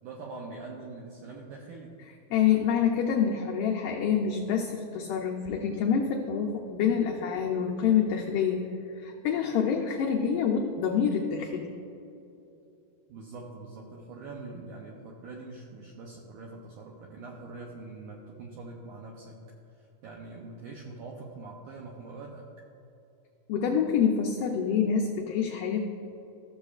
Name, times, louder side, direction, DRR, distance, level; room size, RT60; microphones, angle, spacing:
voice 1, 0.0-1.9 13.1-19.4 19.7-22.5, right 3 dB, 85° right, -1 dB, 1.8 m, -43 dB
voice 2, 2.3-8.6 8.9-11.7 23.5-25.8, left 7 dB, 85° left, -1 dB, 1.8 m, -26 dB
15.0 x 7.0 x 2.4 m, 2.9 s
omnidirectional pair, 4.5 m